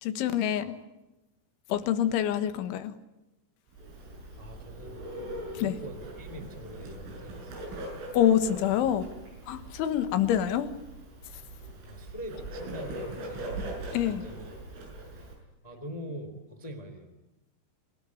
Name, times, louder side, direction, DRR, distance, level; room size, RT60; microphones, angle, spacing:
voice 1, 0.0-0.8 1.7-2.9 5.6-5.8 8.1-9.0 9.5-10.7 13.9-14.2, left 10 dB, 75° left, 10 dB, 3.7 m, -26 dB
Bird, 3.7-15.3, right 1 dB, 80° right, 9.4 m, -41 dB
voice 2, 4.4-5.0 5.6-7.5 9.6-9.7 11.9-13.7 13.9-14.5 15.0-15.2 15.6-17.1, equal, 10° left, 7 dB, 2.0 m, -43 dB
28.0 x 18.0 x 9.8 m, 0.99 s
omnidirectional pair, 5.7 m